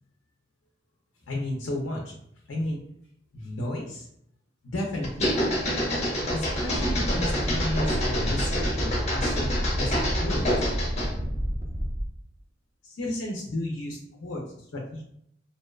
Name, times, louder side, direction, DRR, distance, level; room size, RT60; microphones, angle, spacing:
voice 1, 1.3-2.2 2.5-2.8 3.3-4.1 4.6-5.3 6.3-10.5 12.8-15.0, left 1 dB, 90° left, -1 dB, 0.5 m, -33 dB
sound 1, 5.0-11.2, equal, 35° left, 0.6 m, -27 dB
sound 2, 6.7-12.1, equal, 20° right, 0.4 m, -29 dB
2.6 x 2.1 x 2.3 m, 0.73 s
head